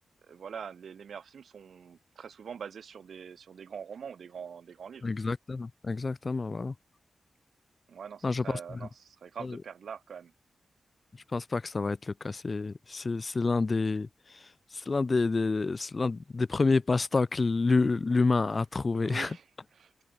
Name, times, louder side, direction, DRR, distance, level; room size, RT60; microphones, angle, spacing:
voice 1, 0.2-5.1 7.9-10.3 18.9-20.0, right 7 dB, 75° right, 2.4 m, -44 dB
voice 2, 5.0-6.7 8.2-8.6 9.4-9.6 11.3-14.4 14.7-19.3, left 3 dB, 35° left, 0.8 m, -28 dB
open air
wide cardioid pair, 105°, 0 cm